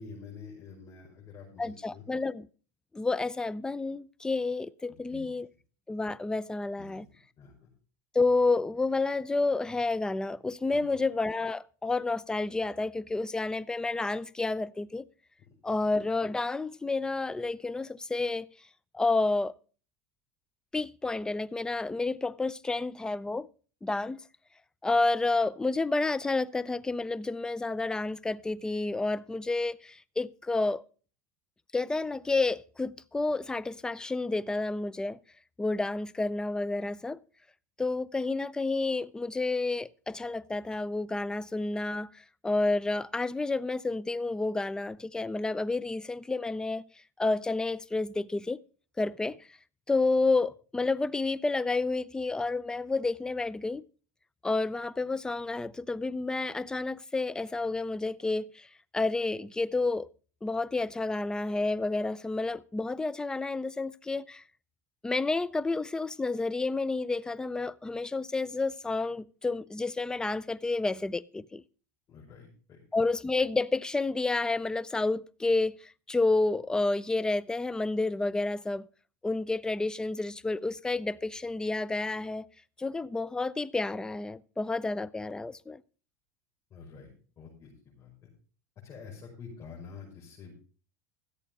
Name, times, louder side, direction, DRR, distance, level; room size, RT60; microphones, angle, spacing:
voice 1, 0.0-2.0 5.1-5.2 6.8-7.0 7.4-7.7 10.7-10.8 72.1-72.8 86.7-87.1 87.4-88.3 88.8-90.5, left 5 dB, 35° left, 6.1 m, -47 dB
voice 2, 1.6-2.5 2.9-5.5 5.9-7.1 8.1-15.0 15.6-18.5 18.9-19.5 20.7-23.5 23.8-24.2 24.8-30.8 31.7-35.2 35.6-37.2 37.8-46.8 47.2-48.6 49.0-49.5 49.9-53.8 54.4-58.7 58.9-60.1 60.4-64.4 65.0-71.6 72.9-78.9 79.2-82.5 82.8-85.8, left 3 dB, 10° left, 0.5 m, -30 dB
14.0 x 8.3 x 5.4 m
supercardioid pair, 120°, 9 cm